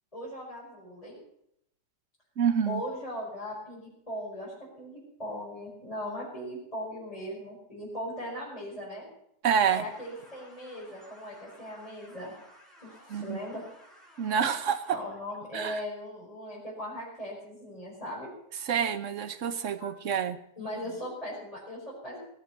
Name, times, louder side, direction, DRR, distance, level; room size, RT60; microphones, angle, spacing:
voice 1, 0.1-1.2 2.7-9.1 9.7-12.3 12.8-13.6 14.9-18.3 19.8-19.9 20.6-22.2, equal, 20° left, -8 dB, 5.5 m, -39 dB
voice 2, 2.4-2.8 9.4-9.8 13.1-13.4 14.2-15.0 15.5-15.8 18.6-20.4, right 7 dB, 50° right, 12 dB, 1.2 m, -27 dB
sound 1, 9.7-15.0, equal, ahead, 5.4 m, -55 dB
19.0 x 8.3 x 8.1 m, 0.76 s
omnidirectional pair, 1.8 m